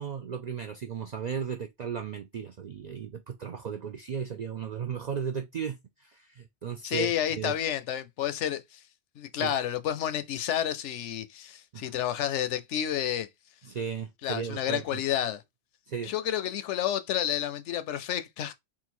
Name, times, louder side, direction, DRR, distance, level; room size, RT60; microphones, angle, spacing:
voice 1, 0.0-7.6 9.4-9.5 11.7-11.9 13.6-15.0 15.9-16.2, right 7 dB, 70° right, 0.4 m, -35 dB
voice 2, 6.8-8.8 9.2-13.3 14.2-15.4 16.0-18.5, left 10 dB, 80° left, 0.9 m, -30 dB
3.8 x 2.4 x 4.3 m
omnidirectional pair, 1.2 m